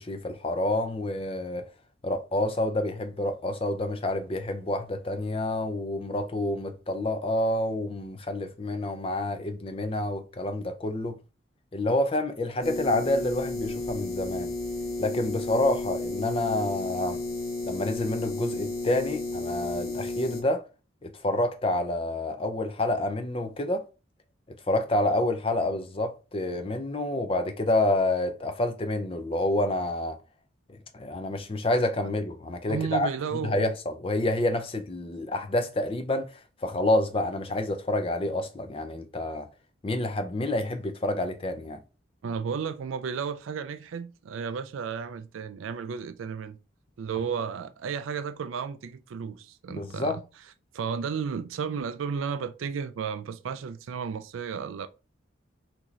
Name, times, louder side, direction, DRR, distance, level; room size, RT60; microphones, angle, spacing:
voice 1, 0.0-1.7 2.0-11.2 11.7-14.5 15.0-17.2 17.7-20.6 21.0-23.8 24.7-30.2 30.7-33.1 33.4-39.5 39.8-41.8 49.7-50.2, left 1 dB, 30° left, 0.4 m, -28 dB
sound 1, 12.6-20.4, left 2 dB, 50° left, 1.3 m, -33 dB
voice 2, 32.7-33.7 42.2-46.6 47.0-50.2 50.7-54.9, right 6 dB, 85° right, 0.4 m, -33 dB
6.0 x 2.8 x 3.1 m
head